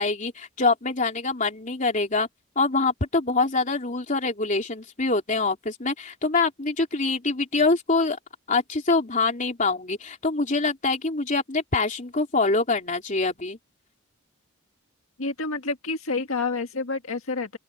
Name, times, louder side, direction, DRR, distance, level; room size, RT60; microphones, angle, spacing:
voice 1, 0.0-2.3 2.5-8.2 8.5-13.6, left 3 dB, 35° left, 3.3 m, -25 dB
voice 2, 15.2-17.6, left 3 dB, 75° left, 1.8 m, -28 dB
open air
head